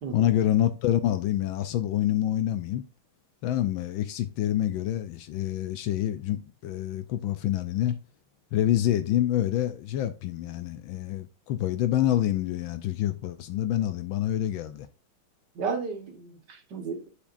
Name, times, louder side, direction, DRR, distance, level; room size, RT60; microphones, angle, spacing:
voice 1, 0.1-2.9 3.4-8.0 8.5-14.9, left 12 dB, 75° left, 1.4 m, -27 dB
voice 2, 15.6-17.1, right 5 dB, 60° right, 1.9 m, -33 dB
10.0 x 5.1 x 2.5 m
omnidirectional pair, 2.2 m